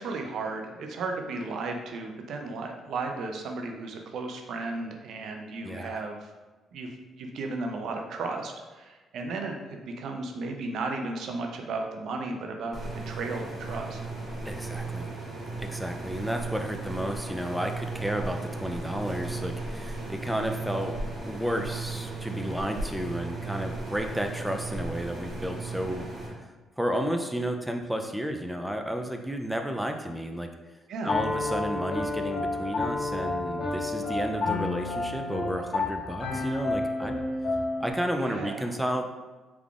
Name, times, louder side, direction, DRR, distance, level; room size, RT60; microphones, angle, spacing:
voice 1, 0.0-6.3 6.7-14.0 30.9-31.2 38.1-38.7, right 3 dB, 75° right, 3 dB, 0.5 m, -34 dB
voice 2, 5.6-6.0 14.4-15.1 15.6-20.9 21.3-26.1 26.8-30.5 31.0-37.2 37.8-39.0, equal, 5° right, 4 dB, 0.3 m, -32 dB
sound 1, 12.7-26.3, right 3 dB, 40° right, 1.2 m, -36 dB
Piano, 31.1-37.9, left 2 dB, 60° left, 1.0 m, -30 dB
3.5 x 3.5 x 2.4 m, 1.2 s
cardioid pair, 90°, 0 cm